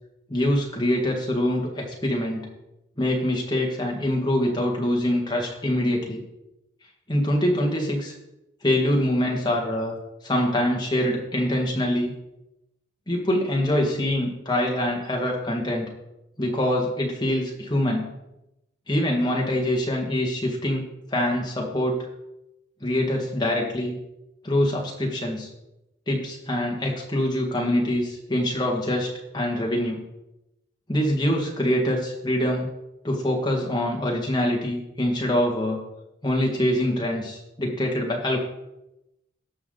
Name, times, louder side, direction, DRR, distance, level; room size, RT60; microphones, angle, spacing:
voice 1, 0.3-2.5 3.0-6.2 7.1-8.1 8.6-10.0 10.2-12.1 13.1-15.9 16.4-18.1 18.9-22.1 22.8-24.0 24.4-25.5 26.1-29.1 29.3-30.0 30.9-32.7 33.0-35.8 36.2-38.4, left 1 dB, 20° left, -1 dB, 2.0 m, -24 dB
17.0 x 6.0 x 4.0 m, 0.91 s
head